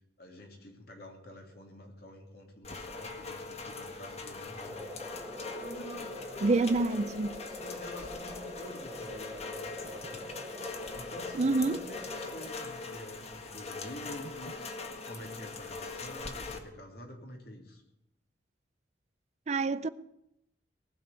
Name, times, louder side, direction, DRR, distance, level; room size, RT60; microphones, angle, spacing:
voice 1, 0.2-4.9 5.5-10.2 10.9-14.6 15.1-17.8, left 1 dB, 60° left, 3.4 m, -48 dB
Rain, 2.6-16.6, left 3 dB, 35° left, 1.7 m, -42 dB
sound 1, 4.6-12.5, equal, 10° right, 1.3 m, -45 dB
voice 2, 6.4-7.4 11.4-11.8 19.5-19.9, right 3 dB, 40° right, 0.5 m, -27 dB
19.5 x 6.8 x 9.8 m
head